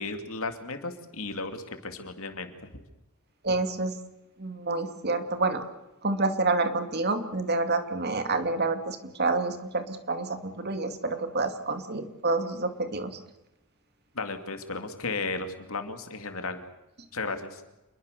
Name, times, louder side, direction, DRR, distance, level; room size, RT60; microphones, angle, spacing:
voice 1, 0.0-2.8 14.1-16.6 17.1-17.6, left 3 dB, 65° left, 7 dB, 3.0 m, -34 dB
voice 2, 3.4-3.9 4.4-5.6 6.0-13.2, right 3 dB, 45° right, 8 dB, 2.4 m, -28 dB
28.0 x 21.5 x 6.9 m, 0.97 s
head